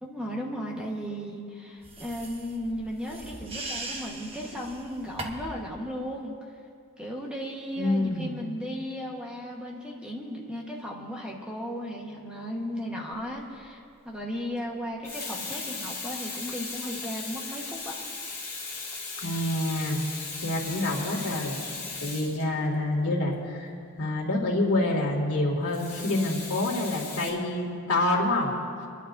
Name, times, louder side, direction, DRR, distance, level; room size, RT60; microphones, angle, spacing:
voice 1, 0.0-6.4 7.0-17.9, equal, 5° right, -2 dB, 1.4 m, -35 dB
sound 1, 1.8-5.6, right 2 dB, 25° right, 1.1 m, -39 dB
voice 2, 7.8-8.4 19.2-20.1 20.4-23.7 24.0-28.5 28.8-28.9, left 2 dB, 90° left, -2 dB, 2.4 m, -27 dB
Water tap faucet / Sink (filling or washing), 13.3-13.5 14.8-23.0 25.7-27.3, left 4 dB, 15° left, 2.1 m, -37 dB
27.0 x 11.5 x 2.7 m, 2.3 s
head